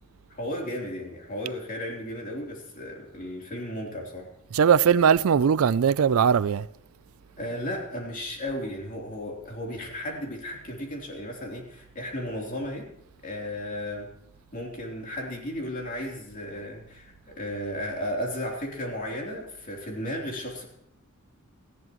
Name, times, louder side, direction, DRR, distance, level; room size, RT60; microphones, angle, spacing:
voice 1, 0.3-4.3 7.4-12.9 13.2-14.1 14.5-20.6, left 1 dB, 40° left, 3.4 m, -34 dB
voice 2, 4.5-6.7, right 7 dB, 70° right, 0.4 m, -20 dB
18.5 x 14.0 x 3.1 m
head